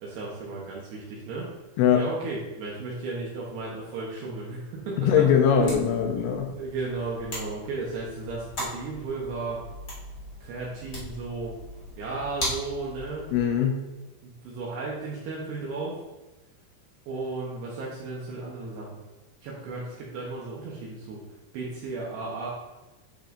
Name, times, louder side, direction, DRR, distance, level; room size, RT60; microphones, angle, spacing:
voice 1, 0.0-1.5 1.9-5.1 5.6-6.2 6.5-9.6 10.4-11.5 12.0-13.2 14.2-15.9 17.1-19.0 19.4-21.2 21.5-22.5, right 3 dB, 75° right, -4 dB, 2.6 m, -34 dB
voice 2, 5.0-6.5 13.3-13.8, left 8 dB, 80° left, 2 dB, 2.9 m, -21 dB
sound 1, 5.0-13.5, equal, 35° left, 1.5 m, -39 dB
10.5 x 5.4 x 2.6 m, 1.1 s
omnidirectional pair, 5.9 m